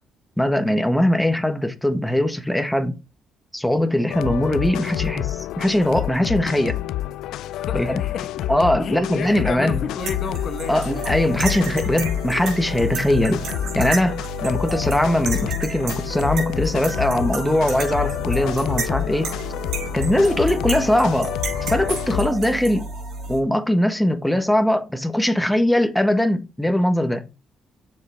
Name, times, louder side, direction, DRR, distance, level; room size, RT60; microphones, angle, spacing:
voice 1, 0.4-2.9 3.5-6.8 7.7-8.0 8.5-9.8 10.7-13.4 13.7-19.3 19.9-21.3 21.6-22.9 23.3-27.3, left 1 dB, 5° left, 1.2 m, -21 dB
sound 1, 4.1-22.3, left 14 dB, 85° left, 0.4 m, -28 dB
voice 2, 7.5-10.8, left 6 dB, 60° left, 1.1 m, -31 dB
sound 2, 10.0-23.4, right 3 dB, 80° right, 4.8 m, -31 dB
7.1 x 6.7 x 3.4 m
cardioid pair, 90°, 0 cm